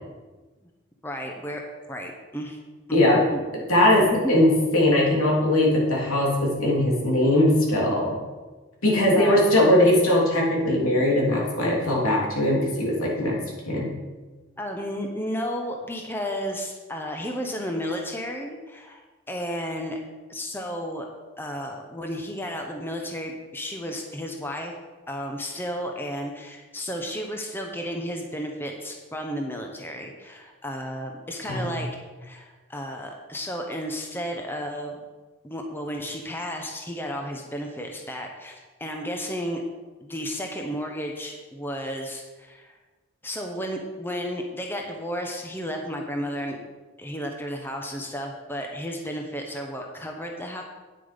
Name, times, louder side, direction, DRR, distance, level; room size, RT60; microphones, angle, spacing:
voice 1, 1.0-1.6 1.9-2.6 2.9-3.0 3.3-3.4 3.8-4.4 9.2-9.4 14.6-19.0 19.3-20.0 20.3-21.1 21.4-24.7 25.1-31.9 32.2-35.0 35.4-39.6 40.0-42.8 43.2-46.6 47.0-50.6, equal, 10° left, 2 dB, 0.9 m, -33 dB
voice 2, 3.7-8.1 8.8-13.4 13.7-13.9 31.5-31.7, left 1 dB, 90° left, -3 dB, 3.2 m, -20 dB
9.7 x 7.8 x 5.2 m, 1.3 s
head